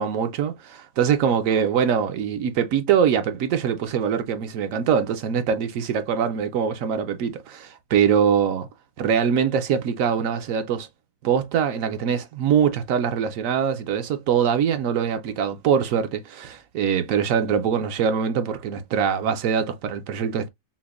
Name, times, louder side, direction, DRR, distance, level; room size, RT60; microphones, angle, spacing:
voice 1, 0.0-8.7 9.0-10.9 11.2-20.5, right 7 dB, 70° right, 0.9 m, -23 dB
5.7 x 2.1 x 2.3 m
omnidirectional pair, 1.7 m